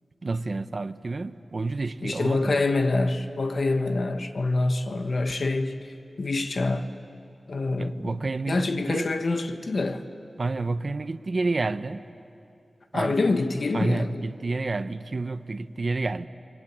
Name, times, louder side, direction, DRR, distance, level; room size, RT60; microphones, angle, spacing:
voice 1, 0.2-2.6 7.8-9.1 10.4-12.0 12.9-13.2 13.7-16.3, right 3 dB, 50° right, 0.7 m, -29 dB
voice 2, 2.0-5.8 6.2-6.9 7.5-8.2 8.5-10.0 12.9-14.2, left 2 dB, 60° left, 1.4 m, -26 dB
28.5 x 23.0 x 8.8 m
wide cardioid pair, 105°, 0 cm